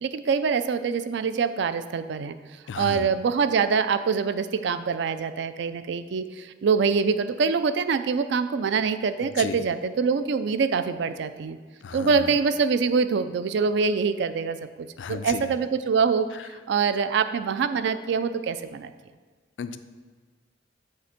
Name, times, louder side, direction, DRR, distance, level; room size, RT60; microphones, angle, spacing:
voice 1, 0.0-2.4 2.8-11.6 11.9-16.3 16.7-18.9, right 5 dB, 65° right, 11 dB, 0.4 m, -25 dB
voice 2, 2.7-3.1 9.2-9.6 11.8-12.3 15.0-15.4 19.6-19.8, left 6 dB, 80° left, 11 dB, 0.4 m, -34 dB
7.8 x 3.3 x 5.8 m, 1.4 s
head